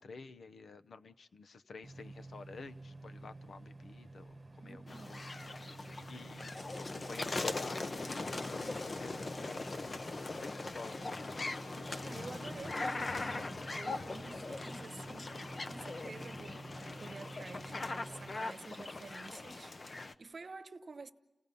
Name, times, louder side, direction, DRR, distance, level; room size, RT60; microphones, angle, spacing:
voice 1, 0.0-5.2 6.1-10.1 10.4-11.5, left 4 dB, 80° left, 0.8 m, -51 dB
dryer-vent trimmed normal, 1.8-18.4, right 2 dB, 15° right, 1.2 m, -51 dB
voice 2, 4.6-5.3 12.0-15.4 15.7-21.1, right 3 dB, 50° right, 0.9 m, -50 dB
sound 1, 4.9-20.1, left 3 dB, 40° left, 0.7 m, -40 dB
30.0 x 17.5 x 5.4 m
wide cardioid pair, 130°, 0 cm